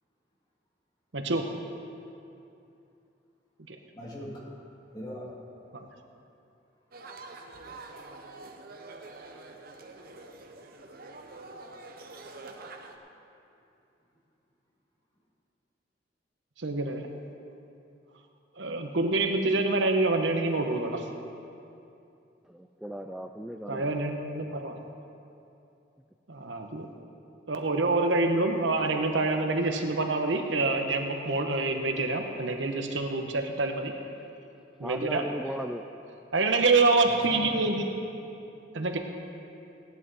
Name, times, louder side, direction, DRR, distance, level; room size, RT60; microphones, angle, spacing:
voice 1, 1.1-1.5 3.7-3.8 16.6-17.1 18.6-21.1 23.7-24.8 26.3-26.9 27.5-33.9 34.8-35.3 36.3-37.9 38.7-39.0, right 3 dB, 85° right, 4 dB, 1.1 m, -26 dB
voice 2, 3.9-4.4 4.9-5.3 37.0-37.7, equal, 20° left, -5 dB, 2.5 m, -40 dB
sound 1, 6.9-13.0, right 3 dB, 55° right, 0.9 m, -46 dB
voice 3, 22.5-23.9 34.8-36.1, equal, ahead, 4 dB, 0.3 m, -37 dB
17.0 x 11.0 x 4.1 m, 2.7 s
head